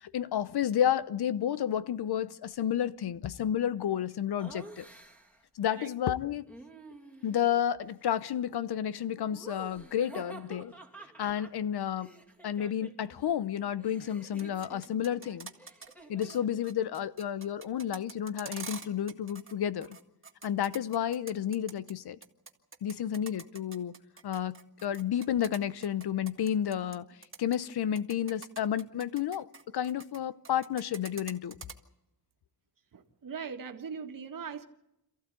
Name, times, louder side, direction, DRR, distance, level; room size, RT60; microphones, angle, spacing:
voice 1, 0.0-4.8 5.6-6.5 7.2-10.7 11.2-12.1 12.4-15.5 16.1-20.0 20.4-22.2 22.8-23.9 24.2-27.1 27.4-29.5 29.7-31.6, left 9 dB, 75° left, 0.9 m, -31 dB
Laughter, 4.4-5.4 6.5-7.5 9.3-13.2 13.4-16.5, right 2 dB, 5° left, 2.4 m, -50 dB
sound 1, 14.2-15.9 16.2-16.4 16.6-19.5 19.8-21.9 22.2-27.0 27.2-27.6 28.0-30.2 30.4-31.7, right 4 dB, 30° right, 1.9 m, -46 dB
voice 2, 32.9-34.7, right 6 dB, 55° right, 1.8 m, -40 dB
27.5 x 14.5 x 8.3 m
wide cardioid pair, 125°, 39 cm